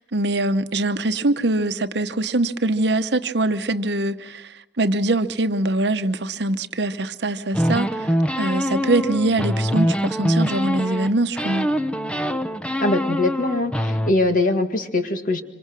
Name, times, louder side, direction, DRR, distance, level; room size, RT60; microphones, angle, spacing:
voice 1, 0.0-11.7, right 2 dB, 65° right, 1.0 m, -23 dB
sound 1, 7.5-11.1 11.4-14.1, equal, 5° left, 0.8 m, -23 dB
voice 2, 12.8-15.4, left 2 dB, 45° left, 1.9 m, -22 dB
26.0 x 25.5 x 6.1 m
head